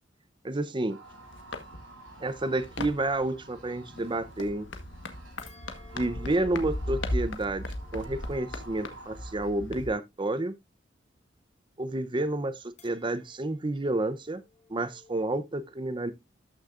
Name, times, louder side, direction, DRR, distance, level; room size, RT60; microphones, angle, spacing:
voice 1, 0.4-1.0 2.2-4.7 5.9-7.7 7.9-10.6 11.8-14.4 14.7-16.1, right 2 dB, 25° right, 0.7 m, -30 dB
sound 1, 0.9-9.5, right 3 dB, 85° right, 3.2 m, -52 dB
sound 2, 1.0-9.9, left 1 dB, 75° left, 1.3 m, -38 dB
sound 3, 5.4-9.9 12.8-15.3, left 3 dB, 40° left, 2.3 m, -57 dB
13.0 x 6.3 x 2.5 m
head